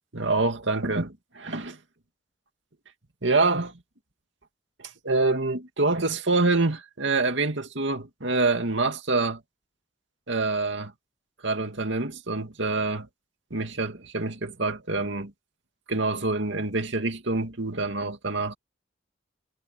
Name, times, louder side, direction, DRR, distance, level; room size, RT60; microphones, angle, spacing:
voice 1, 0.1-1.8 3.2-3.7 4.8-9.4 10.3-10.9 11.4-13.1 13.5-15.3 15.9-18.5, right 3 dB, 70° right, 2.5 m, -26 dB
head